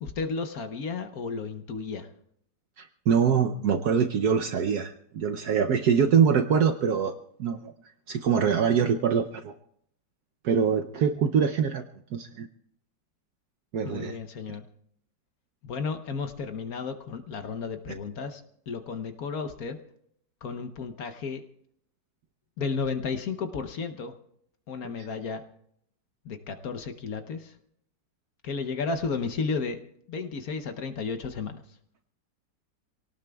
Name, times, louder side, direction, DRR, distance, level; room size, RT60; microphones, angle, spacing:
voice 1, 0.0-2.1 13.8-14.6 15.6-19.8 20.4-21.4 22.6-24.1 24.7-25.4 26.2-27.6 28.4-29.8 30.1-31.6, left 5 dB, 60° left, 8 dB, 1.2 m, -33 dB
voice 2, 2.8-7.1 7.4-7.7 8.1-9.5 10.4-11.8 12.1-12.5 13.7-14.2, right 7 dB, 65° right, 5 dB, 1.2 m, -24 dB
27.0 x 18.0 x 2.3 m, 0.71 s
omnidirectional pair, 1.9 m